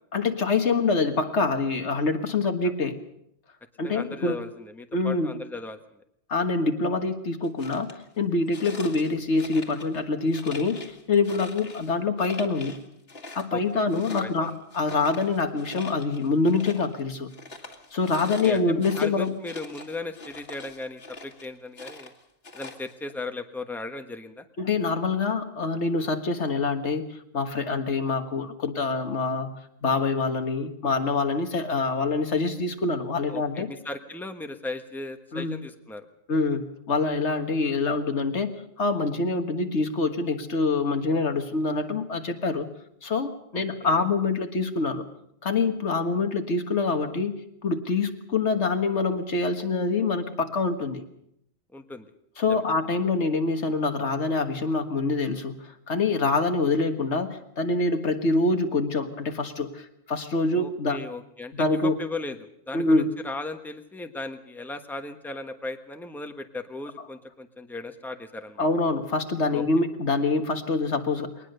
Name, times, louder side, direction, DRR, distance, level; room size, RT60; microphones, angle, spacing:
voice 1, 0.1-2.9 3.8-4.4 4.9-5.3 6.3-12.8 13.3-17.3 17.9-19.3 24.6-27.1 27.3-29.5 29.8-33.7 35.3-35.5 36.3-42.7 43.0-45.0 45.4-51.0 52.4-61.0 61.5-62.0 62.7-63.0 68.6-71.3, left 3 dB, 80° left, 7 dB, 1.9 m, -25 dB
voice 2, 3.8-6.0 13.5-14.5 18.4-22.1 22.5-24.4 33.3-36.0 43.5-44.0 51.7-52.1 52.5-52.6 60.5-68.6 69.5-69.6, left 2 dB, ahead, 7 dB, 1.2 m, -37 dB
sound 1, 7.4-7.9 8.5-10.0 10.3-11.9 12.2-12.8 13.1-17.0 17.3-21.5 21.8-23.1, left 2 dB, 60° left, 2.3 m, -43 dB
22.0 x 19.5 x 6.8 m, 0.75 s
omnidirectional pair, 1.2 m